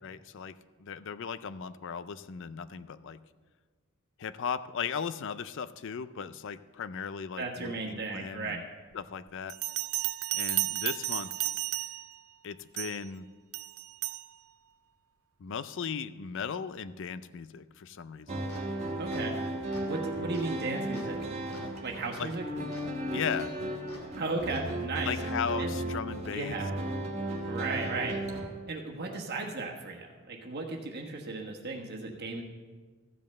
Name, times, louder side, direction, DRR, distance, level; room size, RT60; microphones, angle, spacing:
voice 1, 0.0-3.2 4.2-8.6 8.9-9.6 10.3-11.3 12.4-13.3 15.4-18.4 22.2-22.3 23.1-23.5 25.0-26.6, left 6 dB, 60° left, 15 dB, 0.4 m, -37 dB
voice 2, 7.4-8.6 19.0-19.4 19.9-21.2 21.8-22.4 24.2-25.1 25.6-25.8 26.3-26.7 27.5-28.2 28.7-32.4, right 3 dB, 50° right, 0 dB, 1.3 m, -35 dB
Bell, 9.5-12.2 12.8-13.1 13.5-14.3, right 17 dB, 70° right, 0.4 m, -33 dB
sound 1, 18.3-24.7, equal, 80° left, 2.4 m, -50 dB
sound 2, 18.3-28.5, right 1 dB, 30° right, 1.6 m, -35 dB
14.0 x 5.4 x 7.6 m, 1.4 s
head